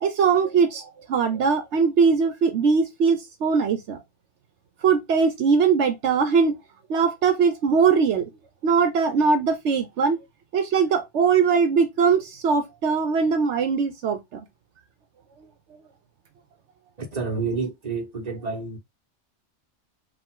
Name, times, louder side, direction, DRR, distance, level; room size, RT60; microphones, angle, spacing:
voice 1, 0.0-4.0 4.8-6.6 6.9-8.2 8.6-10.2 10.5-14.4, right 5 dB, 80° right, 1.1 m, -21 dB
voice 2, 17.0-18.8, right 4 dB, 35° right, 1.3 m, -29 dB
5.1 x 2.5 x 3.7 m
omnidirectional pair, 1.2 m